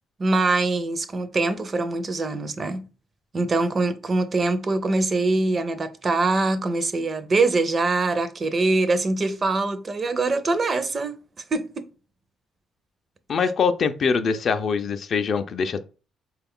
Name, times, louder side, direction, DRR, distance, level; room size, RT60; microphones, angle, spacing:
voice 1, 0.2-2.9 3.3-11.2 11.5-11.9, right 3 dB, 40° right, 0.5 m, -23 dB
voice 2, 13.3-15.8, left 5 dB, 55° left, 0.4 m, -23 dB
3.8 x 2.3 x 3.6 m
cardioid pair, 90°, 0 cm